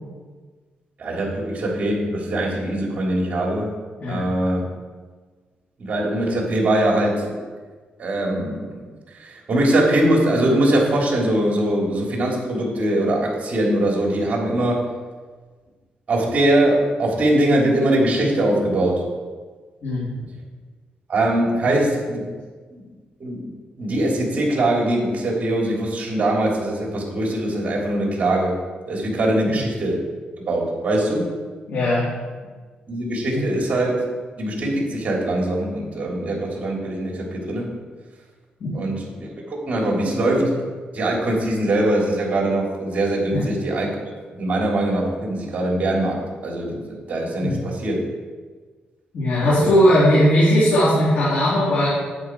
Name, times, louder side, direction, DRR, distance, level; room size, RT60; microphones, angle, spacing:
voice 1, 1.0-3.7 4.1-4.6 5.8-7.4 8.0-8.8 9.1-14.9 16.1-19.0 21.1-22.3 22.7-22.8 23.2-28.5 28.9-30.0 30.4-31.3 32.9-34.0 34.4-37.7 38.7-40.6 40.9-43.9 44.3-48.0 49.4-49.8, right 1 dB, 45° right, -1 dB, 3.4 m, -22 dB
voice 2, 31.7-32.0 33.3-33.4 38.6-38.7 43.3-43.4 47.4-47.6 49.1-51.9, equal, 60° left, -9 dB, 3.8 m, -18 dB
10.5 x 8.9 x 4.7 m, 1.4 s
cardioid pair, 100°, 3 cm